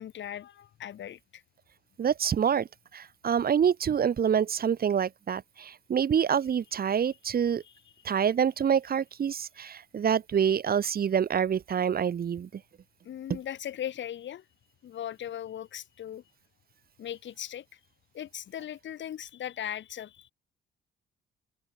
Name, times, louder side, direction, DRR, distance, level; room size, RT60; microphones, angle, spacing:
voice 1, 0.0-1.4 7.6-7.7 13.0-14.4 14.8-16.2 17.0-17.8 18.1-20.3, left 10 dB, 70° left, 4.5 m, -38 dB
voice 2, 2.0-2.7 2.9-7.6 8.0-12.5, right 8 dB, 50° right, 1.6 m, -26 dB
open air
cardioid pair, 90°, 20 cm